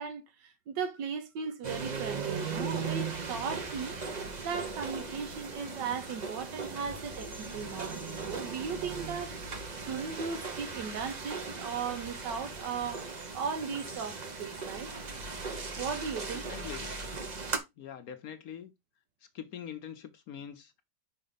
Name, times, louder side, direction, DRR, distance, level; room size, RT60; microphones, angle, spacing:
voice 1, 0.0-9.4 9.7-13.1 13.3-14.9 15.8-16.5, right 6 dB, 85° right, 1.5 m, -37 dB
sound 1, 1.6-17.6, right 4 dB, 40° right, 0.6 m, -38 dB
voice 2, 16.3-17.0 17.8-18.7 19.3-20.8, left 9 dB, 65° left, 1.0 m, -43 dB
5.5 x 4.4 x 3.9 m
omnidirectional pair, 1.9 m